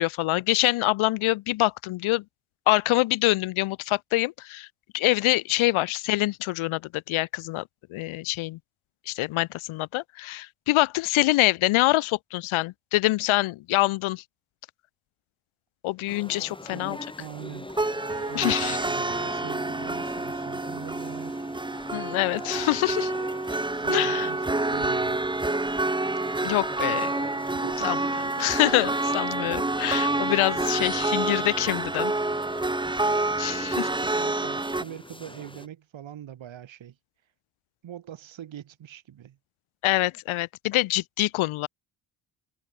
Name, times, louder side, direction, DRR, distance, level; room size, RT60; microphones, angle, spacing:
voice 1, 0.0-2.2 2.7-4.7 4.9-7.6 7.9-8.6 9.1-14.2 15.8-17.0 18.3-18.8 21.9-23.1 23.9-24.3 26.4-27.1 27.8-28.0 28.4-32.1 33.4-33.9 39.8-41.7, left 19 dB, 80° left, 0.8 m, -25 dB
sound 1, 16.1-35.7, left 1 dB, 10° left, 6.8 m, -45 dB
voice 2, 16.7-17.7 18.3-21.5 23.5-25.2 27.5-28.1 34.0-37.0 37.8-39.4, right 11 dB, 70° right, 5.3 m, -43 dB
sound 2, 17.7-34.8, right 2 dB, 10° right, 1.0 m, -28 dB
sound 3, 18.1-20.6, right 6 dB, 45° right, 4.3 m, -45 dB
supercardioid pair, 65°, 48 cm